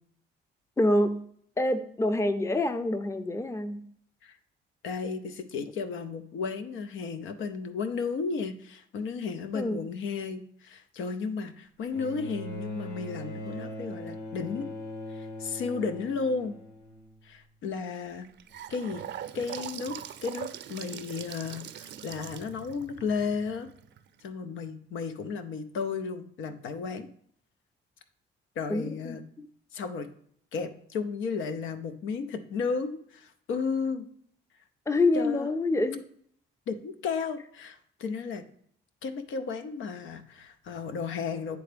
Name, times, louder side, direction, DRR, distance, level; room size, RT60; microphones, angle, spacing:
voice 1, 0.8-1.3 1.6-3.9 9.5-9.8 28.7-29.5 34.9-36.0, left 2 dB, 15° left, 10 dB, 0.6 m, -27 dB
voice 2, 4.8-14.7 15.1-16.6 17.2-18.3 18.7-19.0 19.3-23.7 24.2-27.1 28.6-29.2 29.7-30.1 30.5-34.1 35.1-35.5 36.7-38.4 39.0-41.6, left 5 dB, 80° left, 9 dB, 0.7 m, -33 dB
Bowed string instrument, 11.9-17.4 18.5-18.6, equal, 55° left, 2.4 m, -40 dB
Gurgling / Sink (filling or washing) / Bathtub (filling or washing), 18.1-24.2, right 10 dB, 65° right, 0.5 m, -42 dB
9.1 x 3.5 x 5.0 m, 0.65 s
cardioid pair, 90°, 20 cm